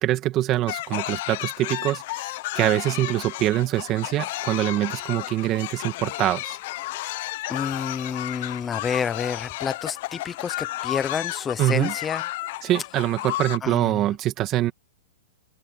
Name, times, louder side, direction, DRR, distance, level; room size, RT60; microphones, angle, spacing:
voice 1, 0.0-6.6 11.6-11.9 12.6-14.7, right 14 dB, 25° right, 1.9 m, -24 dB
sound 1, 0.7-13.6, left 17 dB, 45° left, 0.8 m, -32 dB
voice 2, 7.5-12.2 13.6-13.9, left 7 dB, 15° left, 0.8 m, -29 dB
open air
hypercardioid pair, 160°, 0 cm